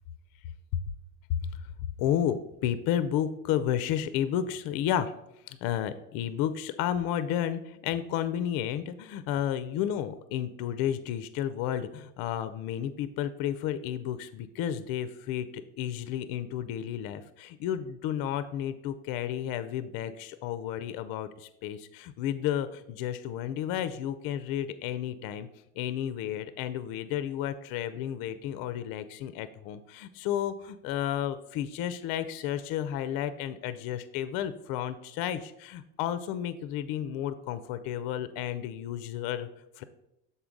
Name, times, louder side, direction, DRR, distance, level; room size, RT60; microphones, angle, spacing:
voice 1, 2.0-5.1 5.5-25.5 25.8-39.5 39.8-39.9, left 10 dB, 60° left, 12 dB, 0.5 m, -32 dB
6.8 x 4.1 x 3.8 m, 0.84 s
hypercardioid pair, 60°, 40 cm